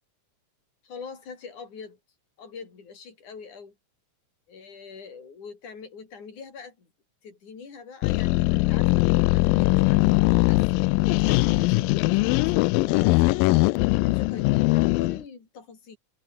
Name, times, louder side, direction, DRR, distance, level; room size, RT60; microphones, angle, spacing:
voice 1, 0.8-2.0 2.4-3.7 4.5-6.9 7.2-10.6 11.1-13.5 13.9-16.0, left 5 dB, 60° left, 6.7 m, -43 dB
sound 1, 8.0-15.2, left 23 dB, 90° left, 2.3 m, -21 dB
open air
omnidirectional pair, 3.9 m